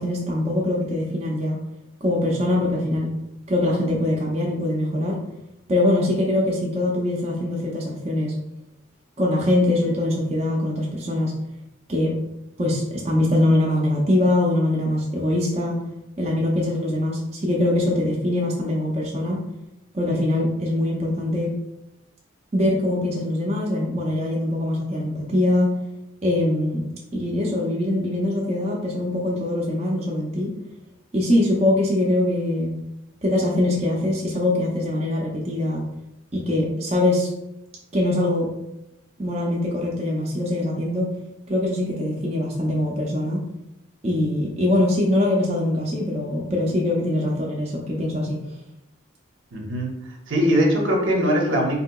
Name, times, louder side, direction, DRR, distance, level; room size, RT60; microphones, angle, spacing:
voice 1, 0.0-1.6 2.0-3.1 3.5-5.2 5.7-8.3 9.2-11.3 11.9-12.1 12.6-15.8 16.2-19.4 19.9-21.5 22.5-25.7 26.2-26.8 27.1-30.5 31.1-32.7 33.2-35.8 36.3-37.3 37.9-38.5 39.2-41.1 41.5-43.4 44.0-48.4, left 1 dB, 30° right, -3 dB, 0.5 m, -23 dB
voice 2, 49.5-50.0 50.3-51.8, equal, 75° right, 0 dB, 0.8 m, -21 dB
3.7 x 2.8 x 2.2 m, 0.87 s
head